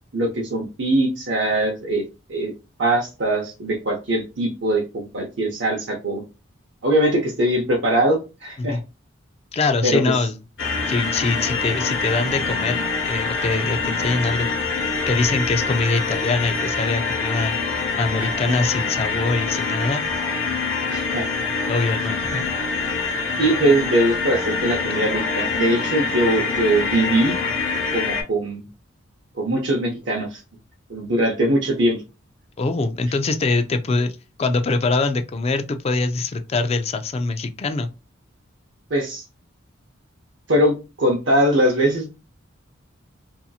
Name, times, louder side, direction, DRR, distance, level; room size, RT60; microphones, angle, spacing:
voice 1, 0.1-2.5 2.8-6.2 6.8-8.8 9.8-10.1 18.2-18.3 20.9-21.3 23.4-27.4 27.9-28.7 29.4-30.4 30.9-32.0 38.9-39.2 40.5-42.1, right 1 dB, 65° right, 0.7 m, -21 dB
voice 2, 9.5-10.4 10.9-14.5 15.1-17.5 18.0-20.0 21.7-22.5 32.6-34.1 34.4-37.9, left 3 dB, 30° left, 0.3 m, -23 dB
sound 1, 10.6-28.2, left 4 dB, 65° left, 0.8 m, -25 dB
2.8 x 2.6 x 2.3 m
head